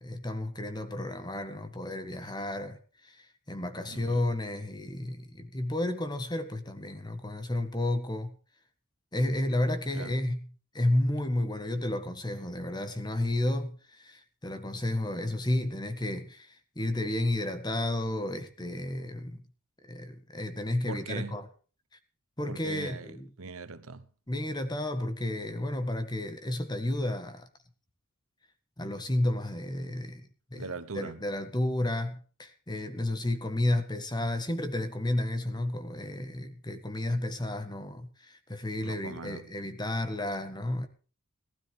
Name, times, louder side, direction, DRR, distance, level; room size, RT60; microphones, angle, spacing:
voice 1, 0.0-8.4 9.1-10.5 10.7-19.4 19.9-21.5 22.4-23.3 24.3-27.5 28.8-30.7 30.9-40.9, left 1 dB, 20° left, 1.6 m, -32 dB
voice 2, 3.9-4.2 9.9-10.2 20.9-21.4 22.5-24.1 30.6-31.2 38.8-39.5, right 4 dB, 85° right, 1.1 m, -41 dB
18.5 x 12.5 x 3.4 m
head